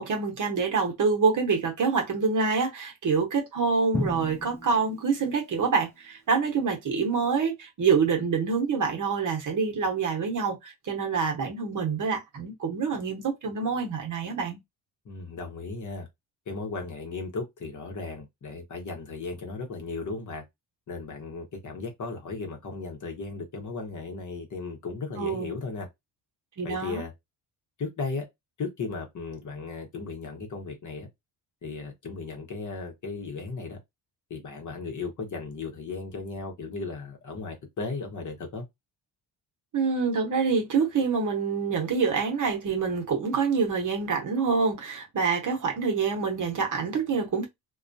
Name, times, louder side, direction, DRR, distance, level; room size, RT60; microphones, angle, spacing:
voice 1, 0.0-14.6 25.2-25.5 26.6-27.0 39.7-47.5, right 5 dB, 45° right, 1.0 m, -26 dB
Drum, 3.9-6.0, left 1 dB, 5° left, 0.5 m, -35 dB
voice 2, 15.0-16.1 16.5-20.4 20.9-25.9 26.6-27.1 27.8-28.3 28.6-31.1 31.6-33.8 34.3-38.6, left 4 dB, 45° left, 0.9 m, -36 dB
2.3 x 2.1 x 2.6 m
cardioid pair, 75°, 43 cm